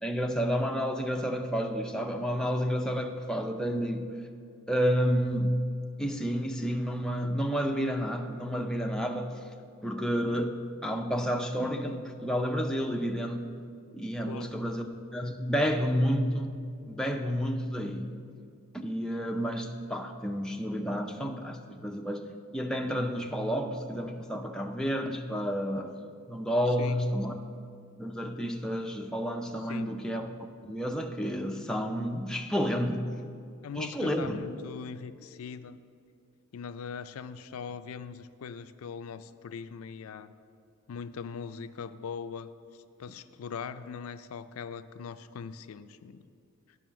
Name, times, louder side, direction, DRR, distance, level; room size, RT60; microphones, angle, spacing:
voice 1, 0.0-4.1 4.7-5.6 6.0-9.4 9.8-13.5 13.9-16.5 16.9-18.1 18.7-22.2 22.5-25.9 26.3-27.3 28.0-30.3 30.6-33.1 33.7-34.4, equal, 5° left, 3 dB, 0.4 m, -30 dB
voice 2, 33.6-35.8 36.5-40.3 40.9-42.5 43.0-46.2, left 6 dB, 80° left, 11 dB, 0.4 m, -40 dB
9.3 x 5.4 x 7.1 m, 2.4 s
head